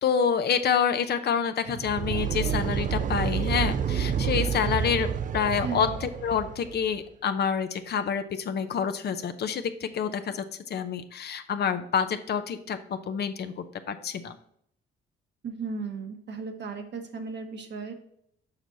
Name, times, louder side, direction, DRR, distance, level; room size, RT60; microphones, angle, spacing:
voice 1, 0.0-5.1 5.3-14.4, left 7 dB, 55° left, 9 dB, 0.7 m, -28 dB
sound 1, 1.7-6.9, right 7 dB, 40° right, 0.5 m, -29 dB
voice 2, 15.4-17.9, right 4 dB, 60° right, 5 dB, 1.2 m, -35 dB
6.6 x 6.0 x 2.7 m, 0.68 s
cardioid pair, 90°, 20 cm